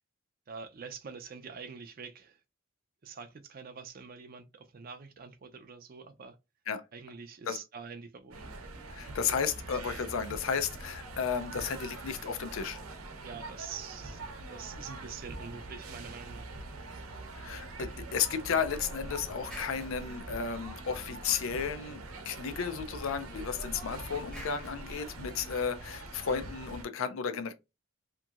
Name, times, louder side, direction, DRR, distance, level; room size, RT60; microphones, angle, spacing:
voice 1, 0.5-2.4 3.0-6.4 6.9-8.4 13.2-14.2 14.5-16.5, right 6 dB, 45° right, 0.4 m, -45 dB
sound 1, 8.3-26.8, right 2 dB, 85° right, 0.8 m, -44 dB
voice 2, 8.9-12.8 17.3-27.5, left 6 dB, 70° left, 0.4 m, -33 dB
sound 2, 18.4-20.9 22.5-25.7, equal, 5° left, 0.7 m, -48 dB
2.9 x 2.7 x 2.3 m
head